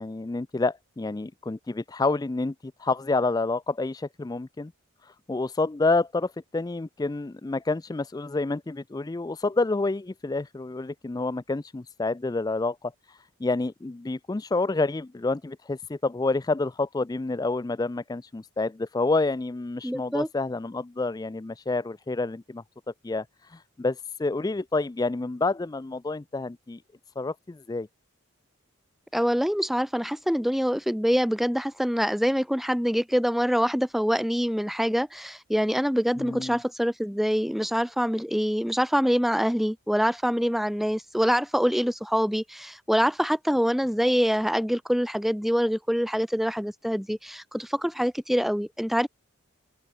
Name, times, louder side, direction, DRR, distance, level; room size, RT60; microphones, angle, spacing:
voice 1, 0.0-4.7 5.0-26.8 27.2-27.9 36.2-36.6, left 3 dB, 15° left, 0.3 m, -28 dB
voice 2, 19.8-20.3 29.1-49.1, equal, ahead, 0.9 m, -25 dB
open air
head